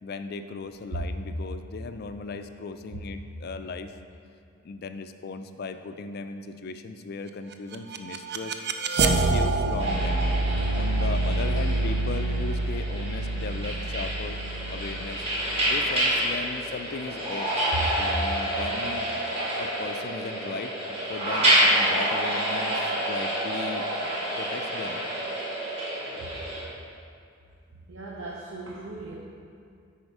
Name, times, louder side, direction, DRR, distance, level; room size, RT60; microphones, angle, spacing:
voice 1, 0.0-3.9 4.6-8.6 9.0-10.2 10.8-14.4 14.7-15.2 15.6-17.5 17.9-19.1 19.6-20.7 21.1-23.9 24.4-25.0, left 4 dB, 45° left, 9 dB, 0.4 m, -37 dB
sound 1, 7.5-16.5, right 2 dB, 50° right, 0.4 m, -27 dB
sound 2, 9.8-26.6, right 1 dB, 25° right, 1.8 m, -28 dB
voice 2, 26.0-26.3 27.9-29.2, right 2 dB, 65° right, -5 dB, 0.8 m, -39 dB
9.4 x 4.3 x 4.8 m, 2.4 s
head